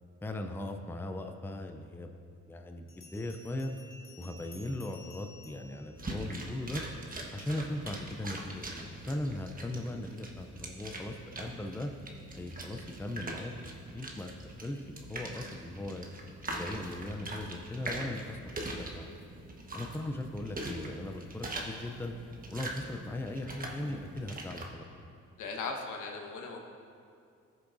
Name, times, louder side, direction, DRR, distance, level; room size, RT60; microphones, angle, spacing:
voice 1, 0.2-2.1 2.5-3.7 4.2-6.8 7.3-11.9 12.3-16.1 16.5-19.2 19.7-22.1 22.5-25.0, left 1 dB, 5° left, 5 dB, 0.5 m, -39 dB
Bell, 2.9-6.8, left 3 dB, 40° left, 1.7 m, -55 dB
sound 1, 5.9-24.7, right 1 dB, 30° right, 1.3 m, -42 dB
voice 2, 25.4-26.6, left 4 dB, 80° left, 1 dB, 1.3 m, -38 dB
16.0 x 6.9 x 2.6 m, 2.4 s
cardioid pair, 90°, 30 cm